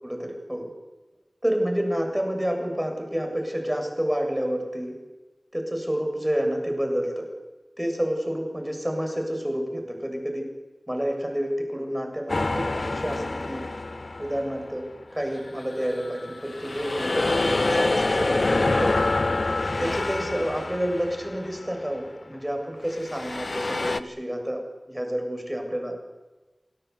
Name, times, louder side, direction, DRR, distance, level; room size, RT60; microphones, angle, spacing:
voice 1, 0.0-0.7 1.4-4.9 5.5-7.3 7.8-10.5 10.9-12.5 12.7-13.6 14.2-14.9 15.1-18.9 19.8-24.6 24.9-26.0, equal, 15° right, 3 dB, 7.4 m, -29 dB
sound 1, 12.3-14.8 15.3-21.8 22.9-24.0, left 2 dB, 70° left, 1.0 m, -26 dB
26.0 x 18.0 x 8.4 m, 1.2 s
wide cardioid pair, 45°, 0 cm